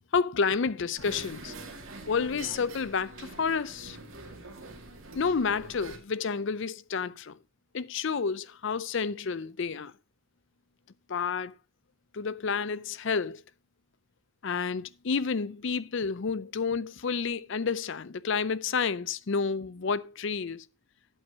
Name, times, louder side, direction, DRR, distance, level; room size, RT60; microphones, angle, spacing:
voice 1, 0.1-1.5 2.1-4.0 5.1-7.4 7.7-9.9 11.1-11.5 12.1-13.4 14.4-20.6, left 5 dB, 55° left, 0.5 m, -30 dB
sound 1, 1.0-6.0, right 2 dB, 65° right, 2.3 m, -45 dB
12.5 x 8.0 x 2.8 m
head